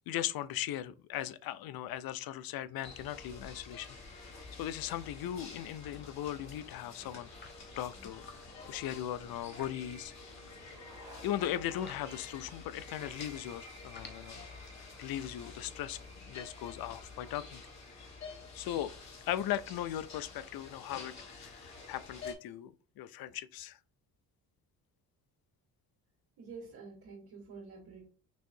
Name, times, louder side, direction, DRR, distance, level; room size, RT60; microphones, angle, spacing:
voice 1, 0.1-4.0 4.6-8.2 8.7-10.1 11.2-14.4 15.0-17.6 18.5-18.9 19.2-23.8, left 12 dB, 70° left, 0.5 m, -38 dB
sound 1, 2.8-22.3, left 3 dB, 45° left, 1.6 m, -49 dB
sound 2, 5.9-6.6 7.2-10.9 11.3-13.4 13.8-19.8, left 4 dB, 25° left, 0.8 m, -58 dB
sound 3, 9.5-12.4, equal, 10° right, 1.7 m, -63 dB
voice 2, 26.4-28.1, right 4 dB, 85° right, 2.2 m, -48 dB
6.3 x 2.7 x 2.6 m
cardioid pair, 100°, 38 cm